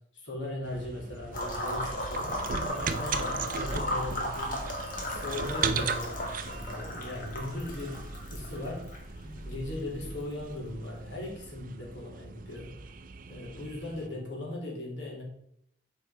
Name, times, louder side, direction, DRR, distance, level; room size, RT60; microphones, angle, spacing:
voice 1, 0.0-4.6 5.0-8.9 9.4-12.9 13.2-15.2, left 2 dB, 80° left, -3 dB, 2.8 m, -39 dB
sound 1, 0.6-14.1, right 5 dB, 45° right, 0.5 m, -38 dB
sound 2, 1.3-11.1, equal, 45° left, 1.6 m, -36 dB
8.3 x 4.8 x 4.2 m, 0.72 s
head